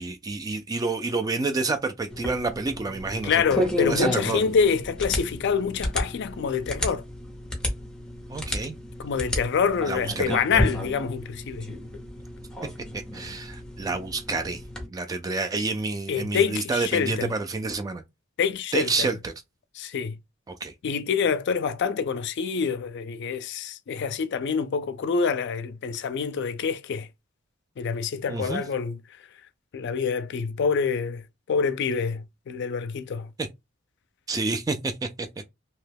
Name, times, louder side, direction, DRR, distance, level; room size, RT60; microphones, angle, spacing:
voice 1, 0.0-4.5 8.3-8.8 9.9-10.3 12.9-14.6 14.9-18.0 18.7-19.3 20.5-20.7 28.3-28.6 33.4-33.5 34.3-35.3, right 3 dB, 20° right, 0.3 m, -29 dB
sound 1, 2.1-14.9, left 1 dB, 5° left, 0.8 m, -32 dB
voice 2, 3.2-7.0 9.0-11.7 16.1-17.3 18.4-19.1 19.8-20.1 20.8-27.1 27.8-29.0 29.7-33.3, left 6 dB, 60° left, 0.4 m, -26 dB
2.8 x 2.2 x 3.3 m
head